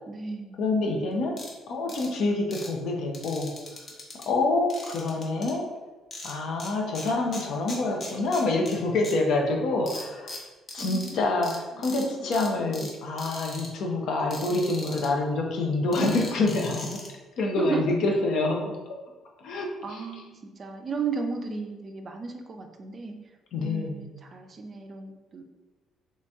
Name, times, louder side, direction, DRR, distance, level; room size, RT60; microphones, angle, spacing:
voice 1, 0.1-0.6 10.8-11.2 11.7-11.9 17.6-17.8 19.8-23.1 23.6-25.4, right 5 dB, 35° right, 4 dB, 0.4 m, -34 dB
voice 2, 0.6-1.4 1.7-3.5 4.3-5.6 6.2-10.3 10.7-17.0 17.4-18.8 19.4-20.0 23.5-24.1, left 2 dB, 70° left, 1 dB, 0.7 m, -27 dB
sound 1, 1.4-1.5 1.9-2.1 2.5-2.7 3.1-4.2 4.7-5.5 6.1-6.7 6.9-8.7 9.0-9.1 9.9-11.1 11.4-11.6 11.8-12.0 12.3-12.9 13.2-13.7 14.3-15.1 15.9-17.1, left 2 dB, 35° left, 0.8 m, -40 dB
3.1 x 2.8 x 3.4 m, 1.2 s
cardioid pair, 120°, 0 cm